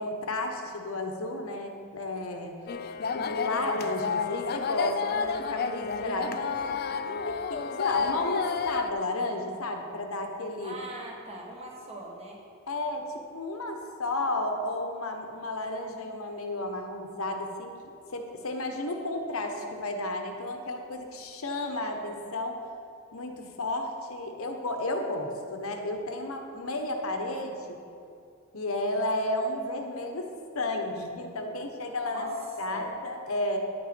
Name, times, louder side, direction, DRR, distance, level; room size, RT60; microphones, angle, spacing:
voice 1, 0.0-2.5 3.1-6.8 7.2-10.7 12.7-17.8 18.1-22.6 23.1-27.8 28.5-30.3 30.5-32.3 32.6-33.6, left 2 dB, 80° left, 4 dB, 1.1 m, -32 dB
sound 1, 2.7-8.9, left 5 dB, 45° left, 0.4 m, -31 dB
voice 2, 10.6-12.4 32.1-32.4 32.7-32.9, right 1 dB, 30° right, -2 dB, 1.6 m, -41 dB
10.5 x 8.7 x 4.4 m, 2.6 s
head